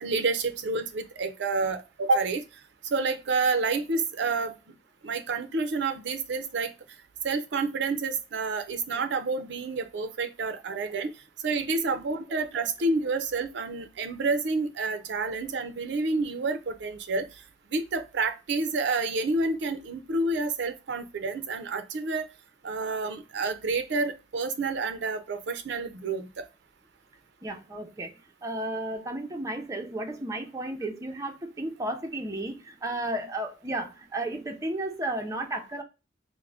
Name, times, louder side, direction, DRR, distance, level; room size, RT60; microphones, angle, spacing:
voice 1, 0.0-2.4 2.9-4.5 5.0-6.7 7.2-11.1 11.4-17.3 17.7-22.3 22.6-26.4, right 3 dB, 70° right, 0.5 m, -29 dB
voice 2, 27.4-35.8, right 1 dB, 20° right, 0.5 m, -33 dB
3.6 x 2.1 x 3.3 m
head